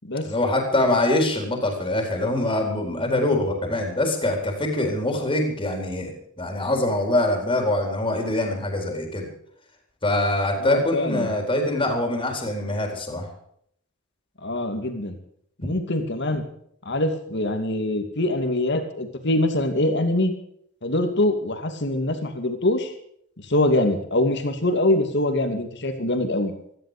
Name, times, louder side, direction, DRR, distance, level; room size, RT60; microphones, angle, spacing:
voice 1, 0.2-6.1 6.4-9.3 10.0-13.3 15.6-15.7, left 1 dB, 25° left, 3 dB, 4.1 m, -24 dB
voice 2, 10.6-11.3 14.4-15.2 15.6-16.4 16.8-20.3 20.8-22.9 23.4-26.5, left 1 dB, 55° left, 6 dB, 2.7 m, -24 dB
17.0 x 14.5 x 5.2 m, 0.68 s
head